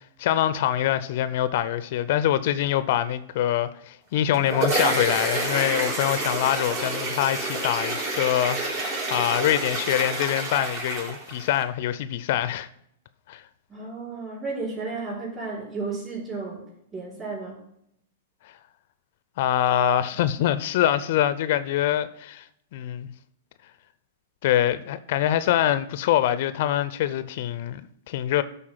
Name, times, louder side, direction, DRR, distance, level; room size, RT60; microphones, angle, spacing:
voice 1, 0.2-12.7 13.3-13.4 19.4-22.4 22.7-23.1 24.4-28.4, left 11 dB, 55° left, 0.5 m, -24 dB
sound 1, 4.1-11.6, right 2 dB, 50° right, 3.6 m, -28 dB
voice 2, 13.7-16.7 16.9-17.6, right 3 dB, 25° right, 4.2 m, -33 dB
12.5 x 4.2 x 5.6 m
hypercardioid pair, 105°, 0 cm